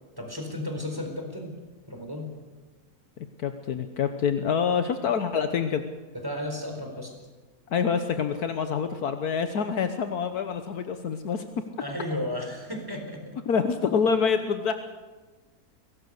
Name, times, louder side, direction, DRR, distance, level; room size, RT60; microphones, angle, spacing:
voice 1, 0.2-1.5 1.9-2.3 6.2-7.1 11.8-13.4, left 1 dB, 15° right, 2 dB, 4.4 m, -33 dB
voice 2, 3.2-5.8 7.7-11.4 13.5-14.7, left 6 dB, 75° left, 8 dB, 1.6 m, -26 dB
22.5 x 18.5 x 6.6 m, 1.3 s
omnidirectional pair, 1.7 m